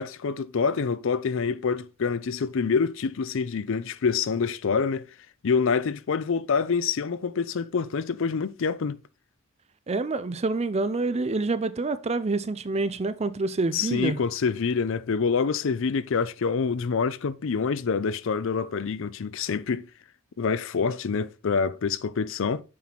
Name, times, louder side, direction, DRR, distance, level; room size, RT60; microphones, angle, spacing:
voice 1, 0.0-5.1 5.4-9.0 13.7-19.9 20.4-22.6, left 5 dB, 65° left, 0.5 m, -26 dB
voice 2, 9.9-14.2, right 3 dB, 30° right, 0.5 m, -27 dB
7.2 x 4.5 x 4.1 m
head